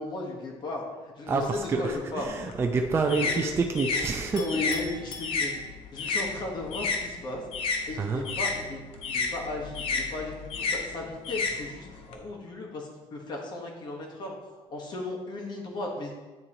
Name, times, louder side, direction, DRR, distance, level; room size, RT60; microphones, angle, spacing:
voice 1, 0.0-2.3 3.2-3.5 3.9-4.0 4.3-5.5 5.9-7.4 7.9-8.8 9.1-14.4 14.7-16.1, left 2 dB, 45° left, 0 dB, 1.3 m, -36 dB
voice 2, 1.3-4.5 8.0-8.3, right 4 dB, 25° right, 3 dB, 0.4 m, -28 dB
sound 1, 2.2-7.0 7.3-12.1, left 4 dB, 60° left, 0.8 m, -31 dB
Chink clink, 4.4-6.0, left 3 dB, 85° left, 1.2 m, -43 dB
9.2 x 3.8 x 2.9 m, 1.3 s
cardioid pair, 140°, 11 cm